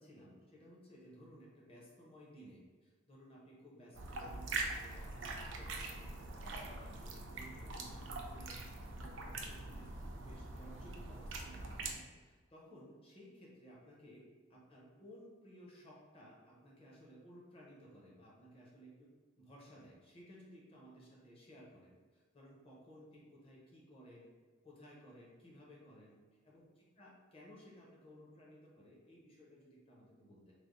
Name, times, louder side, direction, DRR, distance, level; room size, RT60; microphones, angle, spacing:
voice 1, 0.0-8.6 8.9-19.1 19.4-24.3 24.6-26.2 26.4-30.5, equal, 30° left, -4 dB, 0.7 m, -58 dB
sound 1, 3.9-11.9, right 3 dB, 70° right, 0.4 m, -43 dB
3.3 x 2.1 x 3.7 m, 1.4 s
head